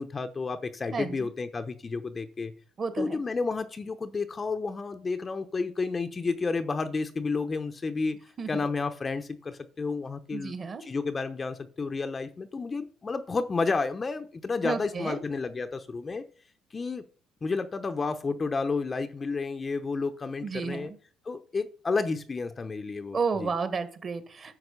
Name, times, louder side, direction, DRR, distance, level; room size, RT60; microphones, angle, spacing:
voice 1, 0.0-2.5 3.0-8.2 8.5-10.5 10.8-16.3 16.7-17.0 17.4-20.9 21.2-23.5, left 4 dB, 25° left, 0.8 m, -31 dB
voice 2, 0.9-1.3 2.8-3.2 8.4-8.6 10.3-10.8 14.6-15.2 20.4-21.0 23.1-24.5, right 5 dB, 35° right, 1.6 m, -32 dB
11.0 x 6.5 x 6.6 m
cardioid pair, 125°, 0 cm